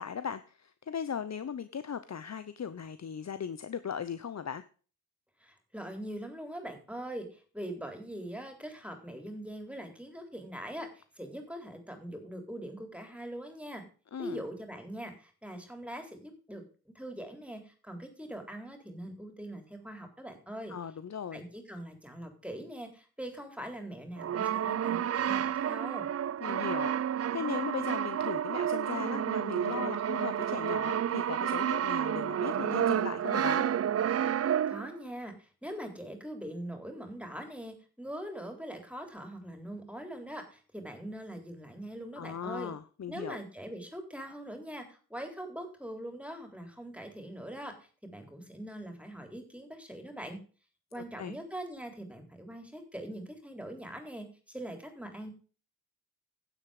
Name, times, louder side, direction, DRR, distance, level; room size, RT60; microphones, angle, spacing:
voice 1, 0.0-4.6 14.1-14.4 20.7-21.4 26.4-33.6 42.1-43.4 51.0-51.3, left 7 dB, 45° left, 12 dB, 0.9 m, -38 dB
voice 2, 5.4-13.8 14.2-20.7 21.3-26.1 34.7-42.7 43.1-50.4 50.9-55.3, right 1 dB, 5° right, 5 dB, 3.7 m, -42 dB
Brass instrument, 24.2-35.0, right 9 dB, 40° right, 0.5 m, -30 dB
11.0 x 7.7 x 5.0 m, 0.38 s
cardioid pair, 55°, 37 cm